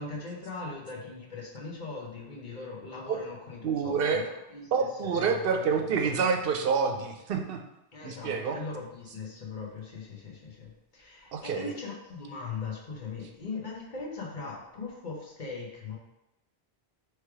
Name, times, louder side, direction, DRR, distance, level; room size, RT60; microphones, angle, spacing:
voice 1, 0.0-6.2 7.9-16.0, left 4 dB, 50° left, -2 dB, 1.1 m, -40 dB
voice 2, 3.6-4.2 4.7-7.6 8.0-8.6 11.3-11.7, right 5 dB, 65° right, 4 dB, 0.8 m, -27 dB
3.2 x 3.2 x 4.7 m, 0.91 s
omnidirectional pair, 1.1 m